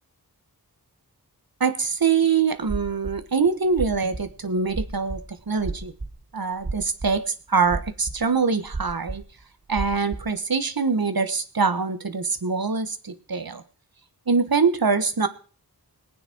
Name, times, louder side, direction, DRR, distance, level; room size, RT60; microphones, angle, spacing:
voice 1, 1.6-5.9 6.3-9.2 9.7-13.6 14.3-15.3, right 5 dB, 65° right, 10 dB, 1.4 m, -24 dB
Real heartbeat sound, 2.7-3.2 3.7-4.3 4.6-5.2 5.6-6.1 6.6-7.1 7.6-8.2 8.7-9.2 9.7-10.2, right 3 dB, 30° right, 1.4 m, -31 dB
21.0 x 9.2 x 4.5 m, 0.40 s
wide cardioid pair, 65°, 39 cm